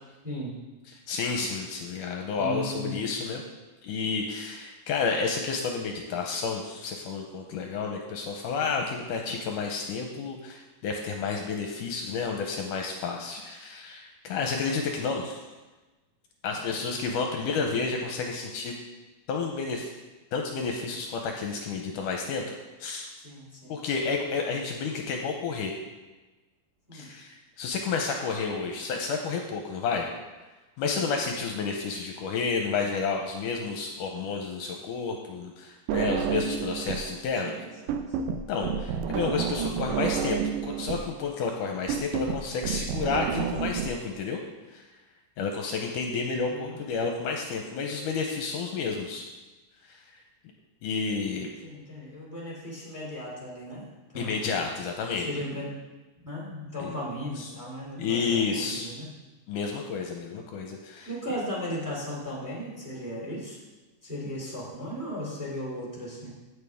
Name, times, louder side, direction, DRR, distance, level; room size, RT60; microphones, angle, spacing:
voice 1, 0.9-3.4 3.8-15.5 16.4-18.8 19.3-19.9 20.3-23.1 23.7-25.7 26.9-30.1 30.8-37.5 38.5-44.4 44.7-44.9 45.4-49.3 49.8-50.2 50.8-51.5 54.1-55.4 56.8-57.0 57.4-57.5 58.0-58.9 59.5-61.1, left 5 dB, 75° left, 2 dB, 2.2 m, -31 dB
voice 2, 2.4-3.0 16.6-16.8 23.2-23.8 26.9-27.1 30.8-31.0 36.2-36.3 37.4-38.0 46.5-46.7 51.6-54.3 55.2-55.7 56.2-59.1 61.1-63.6 64.0-66.3, equal, 5° right, -4 dB, 2.2 m, -36 dB
sound 1, 35.9-37.1 37.4-43.9, right 8 dB, 80° right, 2.1 m, -30 dB
16.0 x 6.6 x 3.6 m, 1.2 s
omnidirectional pair, 4.0 m